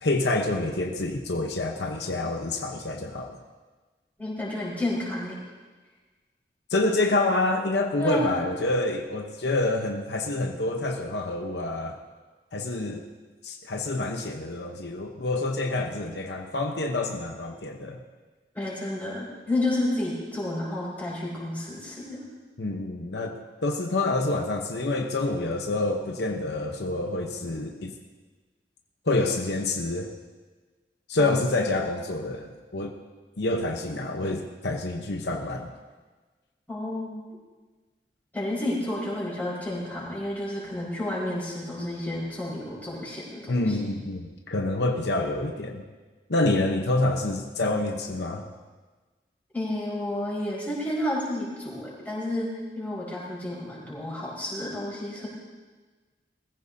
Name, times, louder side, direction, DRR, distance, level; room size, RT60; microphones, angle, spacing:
voice 1, 0.0-3.4 6.7-12.0 12.5-13.1 13.4-18.0 22.6-23.4 23.6-27.9 29.1-30.1 31.1-32.9 33.4-35.7 43.5-45.8 46.3-48.4, left 2 dB, 70° left, 3 dB, 0.9 m, -27 dB
voice 2, 4.2-5.4 8.0-8.4 18.5-22.3 31.2-31.5 36.7-37.2 38.3-43.7 49.5-52.5 52.7-55.3, left 1 dB, 10° left, -7 dB, 4.8 m, -31 dB
21.5 x 15.0 x 2.8 m, 1.3 s
head